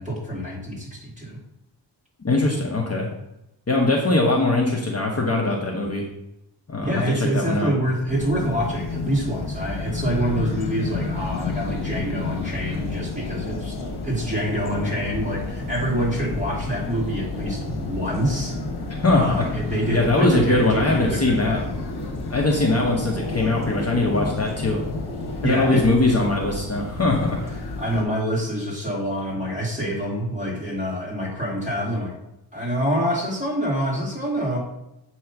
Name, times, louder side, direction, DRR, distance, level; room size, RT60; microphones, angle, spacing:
voice 1, 0.0-1.4 6.8-13.8 14.0-18.5 19.0-21.7 25.4-25.9 27.6-32.1 32.5-34.6, equal, 15° right, -4 dB, 2.5 m, -26 dB
voice 2, 2.2-3.1 3.7-6.0 6.7-7.0 7.3-7.7 19.0-19.4 19.9-21.6 22.3-24.8 25.4-27.4, left 2 dB, 35° left, -1 dB, 1.0 m, -21 dB
sound 1, 8.1-28.0, left 3 dB, 60° left, 1.4 m, -31 dB
7.8 x 3.1 x 5.8 m, 0.87 s
wide cardioid pair, 120°, 44 cm